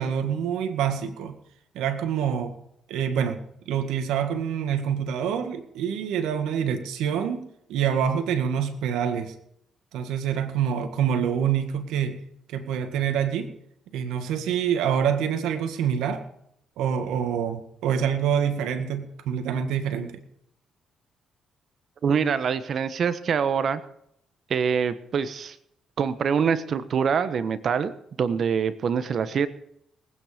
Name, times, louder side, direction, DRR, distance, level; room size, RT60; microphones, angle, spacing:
voice 1, 0.0-1.4 1.7-2.5 2.9-3.4 3.7-7.4 7.7-9.3 9.9-12.2 12.5-13.5 13.9-16.2 16.8-20.2, right 8 dB, 90° right, 8 dB, 1.8 m, -26 dB
voice 2, 22.0-23.8 24.5-25.6 26.0-27.9 28.2-29.5, right 6 dB, 55° right, 13 dB, 1.2 m, -24 dB
19.5 x 9.4 x 5.1 m, 0.72 s
cardioid pair, 90°, 0 cm